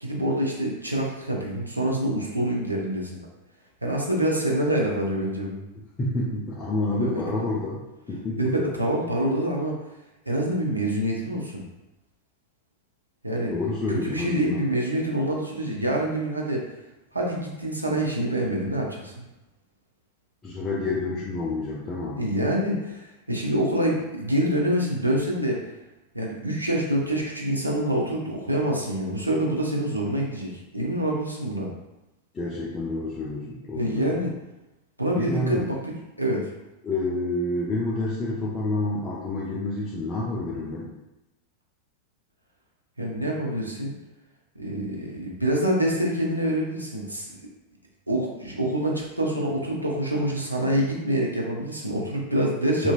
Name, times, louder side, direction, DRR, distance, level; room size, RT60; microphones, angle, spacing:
voice 1, 0.0-3.3 3.8-5.6 7.0-7.1 8.4-9.7 10.3-11.6 13.2-13.5 13.9-16.6 17.1-19.1 22.2-25.6 26.1-31.7 33.7-34.3 35.0-35.8 36.2-36.4 43.0-43.9 44.6-47.3 48.1-52.9, right 1 dB, 85° right, -2 dB, 0.5 m, -26 dB
voice 2, 6.0-7.8 8.1-8.5 13.5-14.7 20.4-22.2 32.3-34.2 35.1-35.7 36.8-40.9, left 2 dB, 20° left, -6 dB, 0.5 m, -28 dB
2.9 x 2.6 x 2.2 m, 0.96 s
figure-of-eight pair, 90°, 0 cm